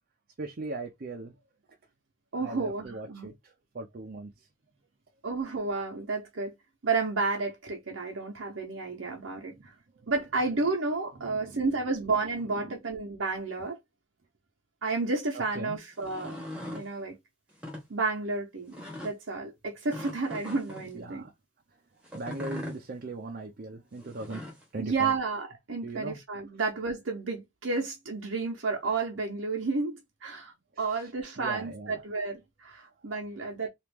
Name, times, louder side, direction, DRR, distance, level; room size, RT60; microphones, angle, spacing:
voice 1, 0.4-1.4 2.4-4.5 9.2-9.3 9.5-9.7 9.9-10.1 11.1-11.6 12.1-12.7 15.3-15.8 20.8-21.3 21.7-21.8 22.1-24.4 24.7-25.1 25.8-26.2 30.7-32.0 33.0-33.1, right 2 dB, 50° right, 0.5 m, -40 dB
voice 2, 2.3-3.3 5.2-6.5 6.8-9.7 10.1-13.8 14.8-16.4 16.7-17.2 17.9-18.7 19.0-21.2 24.8-33.7, right 3 dB, 85° right, 0.8 m, -31 dB
sound 1, 15.9-16.9 17.5-17.8 18.7-19.1 19.9-20.9 22.0-22.8 24.0-24.6, left 1 dB, 5° right, 1.0 m, -40 dB
3.0 x 2.5 x 3.4 m
head